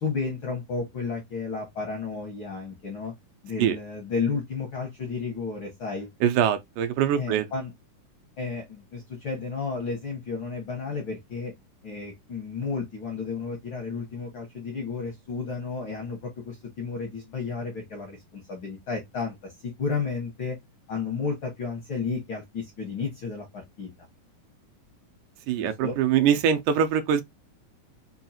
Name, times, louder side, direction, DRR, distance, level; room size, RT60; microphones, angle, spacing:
voice 1, 0.0-3.1 3.4-6.1 7.1-7.7 8.4-11.5 11.8-19.5 19.8-20.6 20.9-23.9 25.6-25.9, left 4 dB, 75° left, 1.1 m, -32 dB
voice 2, 6.2-7.5 25.5-27.2, right 9 dB, 80° right, 2.1 m, -23 dB
5.4 x 2.4 x 2.7 m
omnidirectional pair, 3.8 m